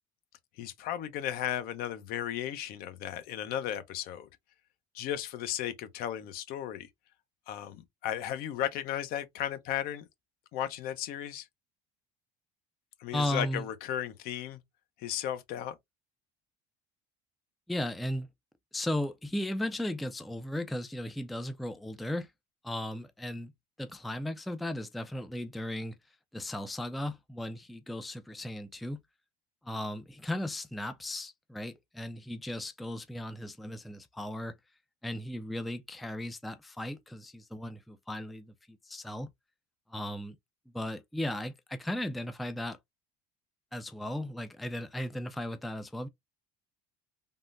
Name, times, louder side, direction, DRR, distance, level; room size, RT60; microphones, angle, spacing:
voice 1, 0.6-4.3 4.9-6.9 7.5-10.1 10.5-11.5 13.0-14.6 15.0-15.8, left 11 dB, 60° left, 0.6 m, -35 dB
voice 2, 13.1-13.6 17.7-18.3 18.7-22.3 22.6-23.5 23.8-26.0 26.3-29.0 29.6-34.6 35.0-39.3 39.9-40.4 40.7-42.8 43.7-46.1, left 1 dB, ahead, 0.3 m, -36 dB
3.5 x 2.1 x 2.4 m
supercardioid pair, 105°, 17 cm